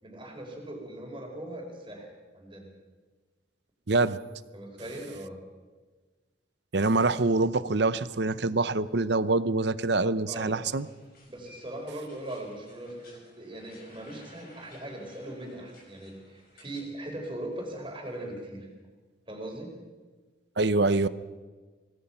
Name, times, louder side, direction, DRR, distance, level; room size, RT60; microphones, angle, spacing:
voice 1, 0.0-2.7 4.5-5.4 10.3-10.7 11.3-18.7 19.3-19.8, right 1 dB, 25° right, 2 dB, 4.6 m, -40 dB
voice 2, 3.9-4.2 6.7-10.9 20.6-21.1, right 3 dB, 60° right, 15 dB, 0.8 m, -25 dB
sound 1, 10.4-16.9 17.2-18.4, left 2 dB, 50° left, 5.9 m, -57 dB
25.0 x 18.5 x 5.8 m, 1.3 s
head